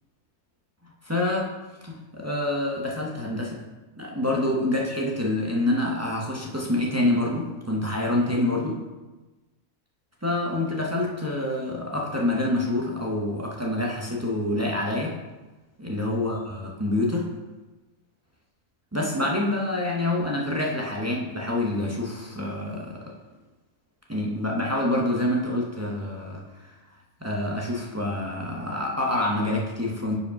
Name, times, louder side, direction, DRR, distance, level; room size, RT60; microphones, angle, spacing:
voice 1, 1.0-1.5 1.8-3.6 4.0-8.8 10.2-15.2 15.8-17.3 18.9-23.0 24.1-26.7 27.2-30.2, left 1 dB, 20° right, -3 dB, 0.4 m, -27 dB
5.1 x 4.8 x 5.1 m, 1.2 s
omnidirectional pair, 1.6 m